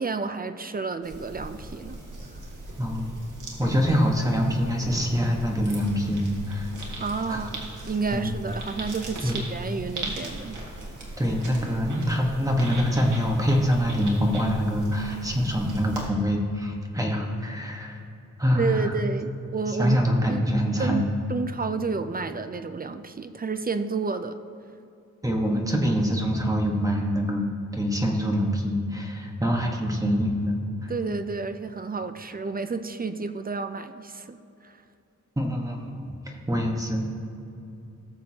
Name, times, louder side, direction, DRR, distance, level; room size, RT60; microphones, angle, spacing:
voice 1, 0.0-2.0 3.8-4.0 7.0-10.6 18.5-20.0 20.3-20.4 20.8-21.0 21.3-24.4 30.9-34.7, right 4 dB, 30° right, 10 dB, 0.4 m, -30 dB
sound 1, 1.0-16.1, right 2 dB, 90° right, 1.8 m, -39 dB
voice 2, 3.6-6.7 7.3-7.5 8.1-8.3 9.2-9.4 11.2-17.9 18.4-18.8 19.8-21.0 25.2-27.5 27.7-30.6 35.4-36.1 36.5-37.1, equal, 10° right, 0 dB, 1.3 m, -25 dB
18.0 x 6.9 x 2.8 m, 2.7 s
wide cardioid pair, 130°, 30 cm